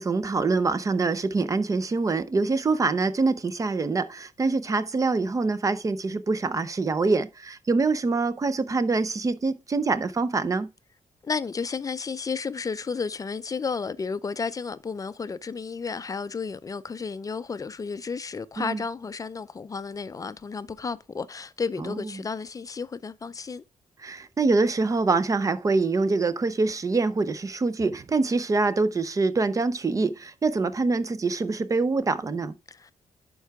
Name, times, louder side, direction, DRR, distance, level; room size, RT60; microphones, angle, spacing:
voice 1, 0.0-10.7 18.6-18.8 21.8-22.0 24.0-32.5, right 3 dB, 25° right, 0.5 m, -25 dB
voice 2, 11.2-23.6 32.7-32.9, left 5 dB, 25° left, 0.4 m, -32 dB
11.0 x 4.7 x 3.5 m
wide cardioid pair, 140°, 13 cm